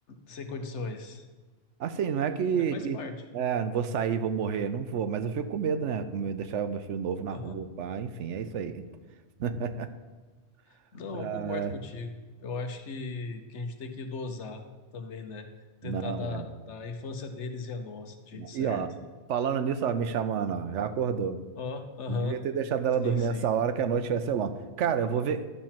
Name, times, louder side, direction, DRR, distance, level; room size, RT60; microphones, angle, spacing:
voice 1, 0.1-1.3 2.6-3.1 7.3-7.6 10.7-14.6 14.9-15.5 15.8-18.8 21.5-22.4 23.0-23.5, left 3 dB, 70° left, 7 dB, 1.2 m, -37 dB
voice 2, 1.8-3.0 3.3-8.8 9.4-9.9 11.2-11.7 15.8-16.5 18.3-18.9 19.3-21.4 22.1-25.5, right 7 dB, 80° right, 11 dB, 1.0 m, -29 dB
11.5 x 4.4 x 7.4 m, 1.3 s
omnidirectional pair, 1.2 m